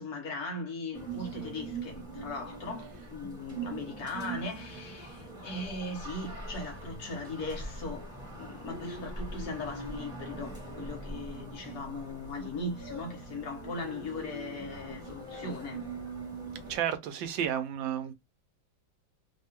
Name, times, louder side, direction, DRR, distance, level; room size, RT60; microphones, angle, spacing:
voice 1, 0.0-8.1 8.4-15.8 16.5-16.7, left 2 dB, 60° left, 1.4 m, -39 dB
sound 1, 0.9-16.8, right 2 dB, 5° right, 1.0 m, -42 dB
voice 2, 16.7-18.1, right 9 dB, 85° right, 1.4 m, -32 dB
3.4 x 2.3 x 2.8 m
omnidirectional pair, 2.0 m